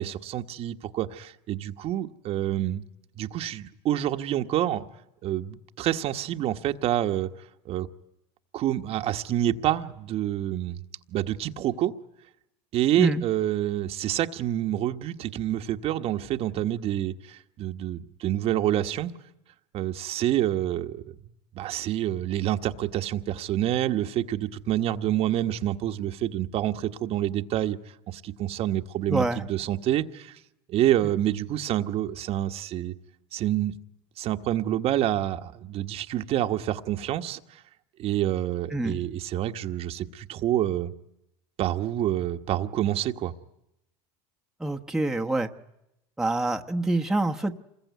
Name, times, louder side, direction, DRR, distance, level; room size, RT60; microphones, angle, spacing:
voice 1, 0.0-2.8 3.2-4.8 5.2-7.9 8.5-10.8 11.1-11.9 12.7-19.1 19.7-21.2 21.5-30.4 30.7-32.9 33.3-33.8 34.2-37.6 38.0-40.9 41.6-43.3, right 12 dB, 45° right, 1.3 m, -27 dB
voice 2, 29.1-29.4 31.0-31.1 38.7-39.0 44.6-45.5 46.2-47.6, right 2 dB, 5° right, 1.1 m, -26 dB
27.5 x 21.5 x 9.4 m
supercardioid pair, 120°, 14 cm